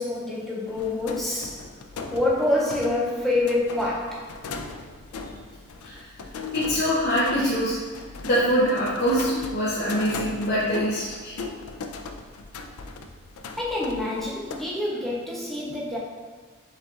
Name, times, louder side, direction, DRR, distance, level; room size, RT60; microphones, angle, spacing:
voice 1, 0.0-1.8 2.1-4.4 13.6-16.0, left 2 dB, ahead, -5 dB, 0.4 m, -26 dB
sound 1, 0.7-14.6, left 4 dB, 85° left, 0.4 m, -38 dB
voice 2, 6.5-7.8 8.2-11.4, equal, 45° left, -8 dB, 0.7 m, -24 dB
5.5 x 3.9 x 2.4 m, 1.5 s
head